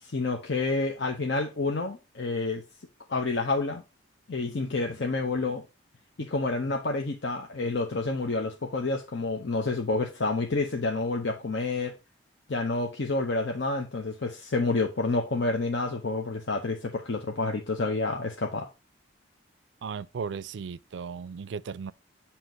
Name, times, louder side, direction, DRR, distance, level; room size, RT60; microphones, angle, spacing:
voice 1, 0.0-2.6 3.1-3.8 4.3-5.6 6.2-11.9 12.5-18.7, left 3 dB, 65° left, 0.8 m, -29 dB
voice 2, 19.8-21.9, right 6 dB, 65° right, 0.4 m, -36 dB
7.6 x 2.9 x 5.2 m
head